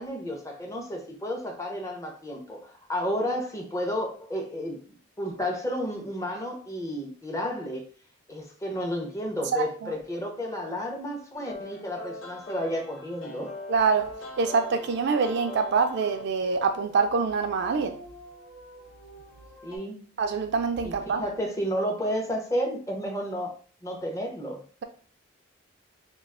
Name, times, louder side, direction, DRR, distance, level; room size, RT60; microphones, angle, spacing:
voice 1, 0.0-4.8 5.2-7.8 8.3-13.5 19.6-20.1 20.8-20.9 21.2-23.6 23.8-24.6, equal, 15° left, 0.5 m, -31 dB
voice 2, 9.5-9.9 13.7-14.1 14.4-18.0 20.2-21.2, right 5 dB, 55° right, 0.3 m, -25 dB
sound 1, 11.3-19.8, left 2 dB, 65° left, 0.7 m, -43 dB
2.3 x 2.2 x 3.5 m
head